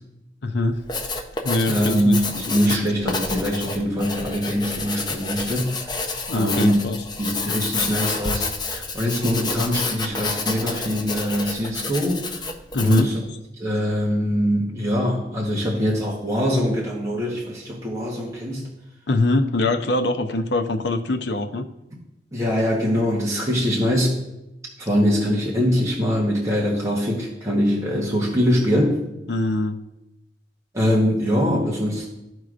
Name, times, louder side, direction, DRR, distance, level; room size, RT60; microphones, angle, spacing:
voice 1, 0.4-0.8 1.4-2.2 6.3-7.0 12.7-13.1 19.1-21.7 29.3-29.8, left 2 dB, 75° left, 8 dB, 0.6 m, -23 dB
Writing, 0.7-13.2, left 3 dB, 25° left, 0.7 m, -29 dB
voice 2, 1.7-5.9 6.3-6.8 7.2-8.5 8.7-12.4 12.8-13.2 13.6-18.7 22.3-24.2 24.8-29.0 30.7-32.1, equal, 20° right, -4 dB, 1.1 m, -23 dB
13.5 x 4.6 x 2.5 m, 0.90 s
head